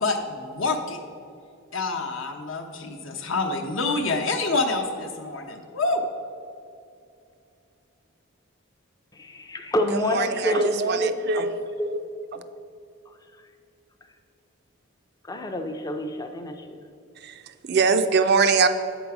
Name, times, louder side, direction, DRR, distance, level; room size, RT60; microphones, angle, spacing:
voice 1, 0.0-1.0 1.7-6.0, left 3 dB, 65° left, 3 dB, 0.8 m, -27 dB
voice 2, 9.1-10.7 11.0-11.1 11.8-11.9 15.3-16.8, left 1 dB, 15° left, 5 dB, 0.4 m, -27 dB
voice 3, 9.9-11.6 11.9-12.0 12.3-12.4 17.2-18.7, right 5 dB, 50° right, 9 dB, 0.4 m, -23 dB
8.4 x 3.9 x 5.9 m, 2.5 s
head